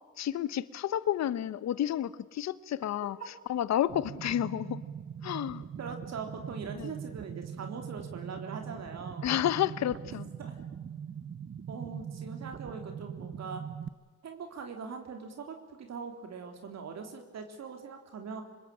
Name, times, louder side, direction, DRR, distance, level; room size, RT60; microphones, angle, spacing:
voice 1, 0.2-4.8 5.2-5.6 6.7-6.9 9.2-10.2, left 11 dB, 65° left, 17 dB, 1.0 m, -31 dB
sound 1, 3.9-13.9, right 8 dB, 40° right, 0.9 m, -42 dB
voice 2, 5.8-9.3 10.4-10.5 11.7-13.6 14.2-18.4, right 5 dB, 60° right, 4 dB, 3.5 m, -41 dB
25.5 x 21.0 x 8.7 m, 1.3 s
cardioid pair, 90°, 30 cm